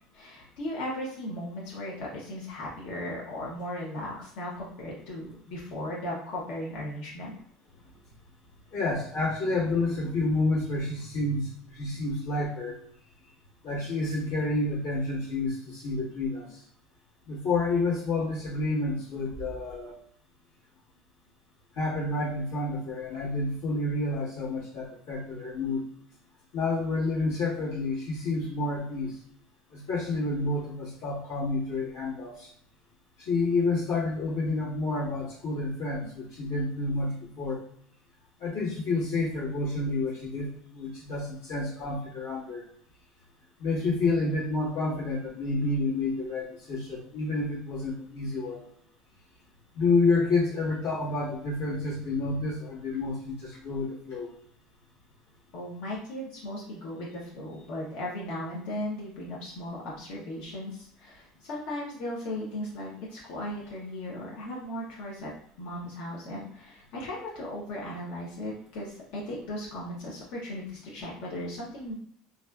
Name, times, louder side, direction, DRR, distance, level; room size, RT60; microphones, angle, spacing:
voice 1, 0.1-7.4 55.5-65.3 65.6-71.9, left 1 dB, 70° left, -4 dB, 0.7 m, -37 dB
voice 2, 8.7-12.8 13.6-16.6 17.3-20.0 21.7-25.8 26.5-29.1 29.7-32.5 33.2-37.6 38.4-42.6 43.6-48.6 49.7-54.3, left 3 dB, 90° left, -9 dB, 1.3 m, -29 dB
2.5 x 2.3 x 2.2 m, 0.64 s
cardioid pair, 140°, 2 cm